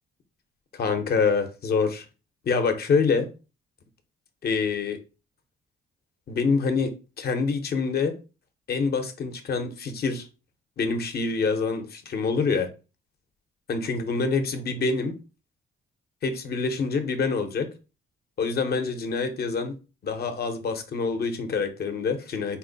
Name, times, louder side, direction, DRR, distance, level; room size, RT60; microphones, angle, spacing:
voice 1, 0.7-2.0 2.4-3.3 4.4-5.0 6.3-6.9 7.2-8.1 8.7-10.3 10.8-12.7 13.7-15.1 16.2-17.7 18.4-19.7 20.0-22.6, left 4 dB, 55° left, 0.8 m, -26 dB
4.3 x 2.1 x 3.9 m
cardioid pair, 90°, 20 cm